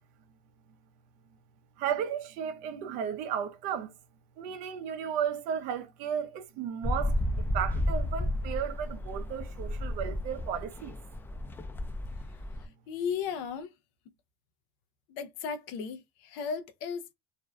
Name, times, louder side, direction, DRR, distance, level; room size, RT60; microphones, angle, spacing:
voice 1, 1.8-3.9 4.4-10.9, right 8 dB, 65° right, 0.5 m, -34 dB
sound 1, 6.8-12.7, left 1 dB, 15° left, 0.4 m, -32 dB
voice 2, 12.9-13.7 15.1-17.1, left 6 dB, 75° left, 0.5 m, -35 dB
2.5 x 2.2 x 2.2 m
supercardioid pair, 110°, 14 cm